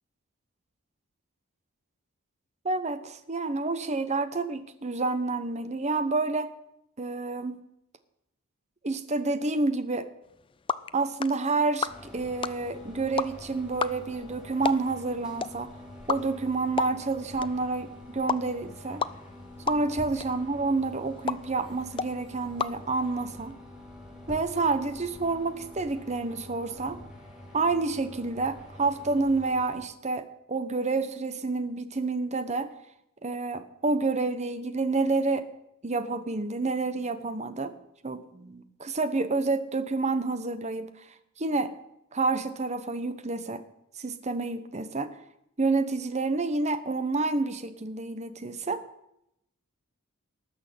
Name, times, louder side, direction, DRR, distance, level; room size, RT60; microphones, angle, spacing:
voice 1, 2.6-6.5 7.0-7.6 8.8-10.1 10.9-15.7 16.1-19.0 19.7-23.6 24.3-27.0 27.5-32.7 33.2-35.5 35.8-37.7 38.0-41.1 41.4-41.7 42.1-43.6 44.0-45.2 45.6-48.8, right 3 dB, 30° right, 12 dB, 0.9 m, -29 dB
sound 1, 10.2-23.5, left 5 dB, 25° left, 0.4 m, -36 dB
sound 2, 11.8-29.8, left 1 dB, 5° right, 2.8 m, -46 dB
18.5 x 6.3 x 7.7 m, 0.81 s
head